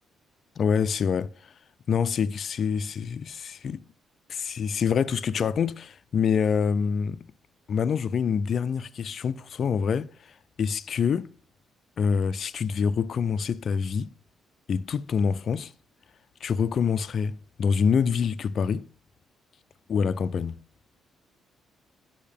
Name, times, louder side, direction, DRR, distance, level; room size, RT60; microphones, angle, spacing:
voice 1, 0.6-1.3 1.9-3.8 4.3-7.2 7.7-10.1 10.6-11.3 12.0-14.1 14.7-15.7 16.4-18.9 19.9-20.6, left 6 dB, 50° left, 0.4 m, -26 dB
8.6 x 5.4 x 3.5 m
cardioid pair, 110°, 0 cm